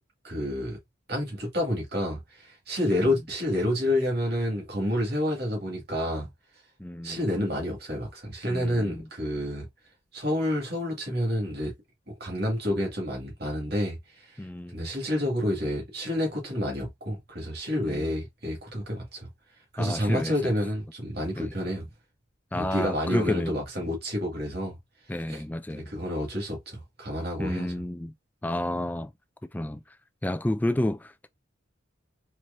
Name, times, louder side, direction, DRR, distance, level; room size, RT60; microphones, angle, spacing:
voice 1, 0.2-0.8 1.1-6.3 7.0-9.7 10.1-11.7 12.1-19.3 19.7-21.9 22.5-24.8 25.3-25.4 25.7-27.7, left 1 dB, 50° right, 2.1 m, -29 dB
voice 2, 6.8-7.3 8.5-9.0 14.4-14.9 17.8-18.1 19.8-20.5 21.4-21.5 22.5-23.5 25.1-25.9 27.4-28.1 28.4-29.1 29.5-29.8 30.2-31.3, left 1 dB, 10° left, 0.3 m, -30 dB
4.6 x 3.0 x 2.6 m
head